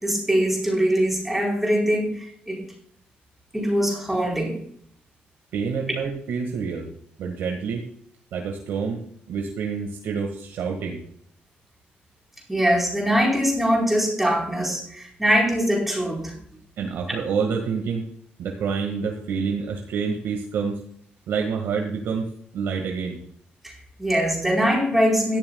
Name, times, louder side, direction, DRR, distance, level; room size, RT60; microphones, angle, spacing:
voice 1, 0.0-2.6 3.5-4.6 12.5-16.3 23.6-25.4, equal, 5° right, -1 dB, 4.3 m, -22 dB
voice 2, 5.5-6.9 7.2-7.8 8.3-9.0 9.3-11.0 16.8-18.0 18.4-20.8 21.3-22.3 22.5-23.2, right 5 dB, 80° right, 1 dB, 1.9 m, -27 dB
16.0 x 13.0 x 2.4 m, 0.64 s
cardioid pair, 175°, 4 cm